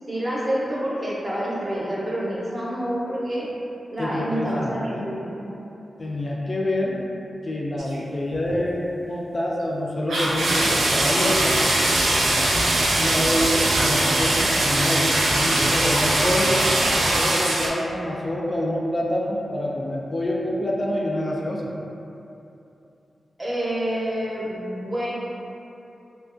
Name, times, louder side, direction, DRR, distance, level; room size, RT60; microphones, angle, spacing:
voice 1, 0.1-3.5 3.9-5.6 23.4-25.1, equal, 40° right, -7 dB, 0.6 m, -28 dB
voice 2, 4.0-5.1 6.0-7.0 7.4-11.6 13.0-16.6 17.1-21.7, left 1 dB, 45° left, -3 dB, 0.3 m, -26 dB
sound 1, 7.8-8.0 8.3-8.6 10.1-17.7, right 1 dB, 80° right, 0.3 m, -21 dB
2.3 x 2.1 x 2.5 m, 2.8 s
cardioid pair, 45°, 0 cm